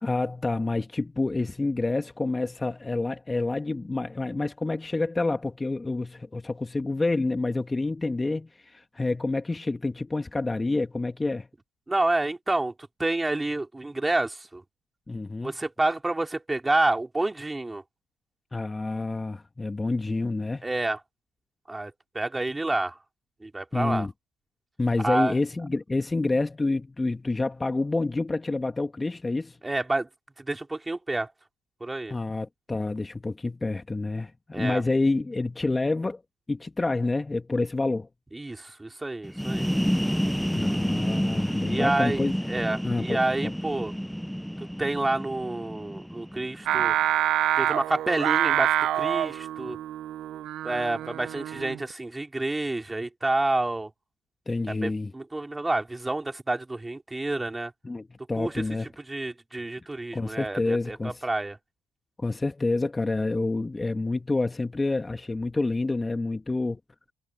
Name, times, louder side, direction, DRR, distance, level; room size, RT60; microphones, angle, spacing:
voice 1, 0.0-11.5 15.1-15.5 18.5-20.6 23.7-24.1 24.8-29.6 32.1-36.2 36.5-38.1 40.5-42.4 42.8-43.5 54.5-55.1 57.8-58.9 60.1-61.3 62.2-66.8, left 3 dB, 20° left, 1.9 m, -28 dB
voice 2, 11.9-12.7 13.0-14.6 15.4-17.8 20.6-21.0 21.7-23.0 23.4-24.1 25.0-25.3 29.6-30.1 30.4-31.3 31.8-32.1 34.5-34.8 38.3-39.7 41.7-42.2 42.5-43.9 44.8-46.9 47.6-49.8 50.6-53.9 54.7-57.7 58.4-58.6 59.1-61.6, right 2 dB, 15° right, 4.4 m, -28 dB
sound 1, 39.2-46.8, equal, ahead, 0.9 m, -29 dB
Singing, 46.7-51.9, right 13 dB, 65° right, 0.9 m, -26 dB
hypercardioid pair, 60°, 0 cm